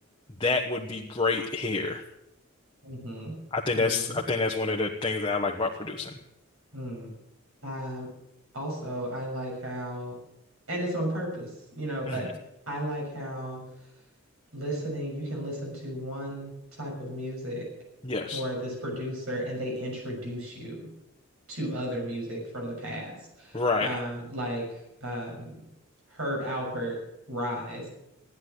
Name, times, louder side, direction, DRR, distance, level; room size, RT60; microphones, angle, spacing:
voice 1, 0.4-2.0 3.5-6.1 12.1-12.3 18.0-18.4 23.5-24.0, left 3 dB, 25° left, 0 dB, 1.2 m, -28 dB
voice 2, 2.8-3.3 3.8-4.2 6.7-7.1 7.6-8.1 8.5-10.1 10.7-11.5 11.7-12.3 12.7-13.6 14.5-17.7 18.3-20.9 21.5-24.6 25.0-25.5 26.1-26.9 27.3-27.9, equal, 75° right, -1 dB, 6.6 m, -34 dB
16.0 x 10.5 x 8.0 m, 0.89 s
head